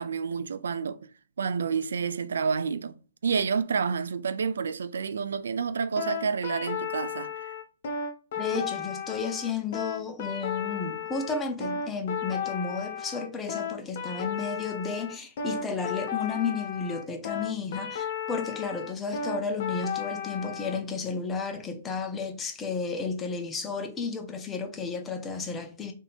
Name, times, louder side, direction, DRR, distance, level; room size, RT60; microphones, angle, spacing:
voice 1, 0.0-3.0 3.2-7.5, right 5 dB, 85° right, 0.3 m, -29 dB
sound 1, 6.0-20.8, left 7 dB, 55° left, 0.9 m, -34 dB
voice 2, 8.4-25.9, left 4 dB, 15° left, 0.7 m, -32 dB
3.5 x 2.7 x 4.2 m
hypercardioid pair, 145°, 0 cm